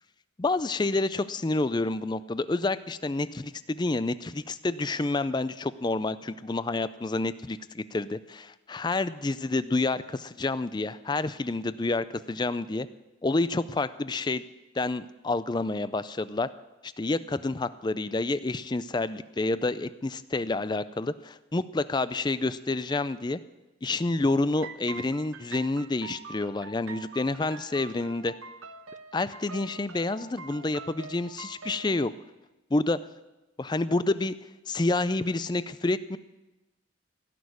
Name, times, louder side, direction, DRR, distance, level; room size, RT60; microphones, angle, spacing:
voice 1, 0.4-12.9 13.2-14.4 14.7-16.5 16.8-23.4 23.8-28.3 29.1-32.1 32.7-33.0 33.6-34.3 34.7-36.2, left 2 dB, 20° left, 15 dB, 0.4 m, -28 dB
sound 1, 24.6-32.0, right 4 dB, 90° right, 1.0 m, -45 dB
17.0 x 6.4 x 9.4 m, 1.1 s
head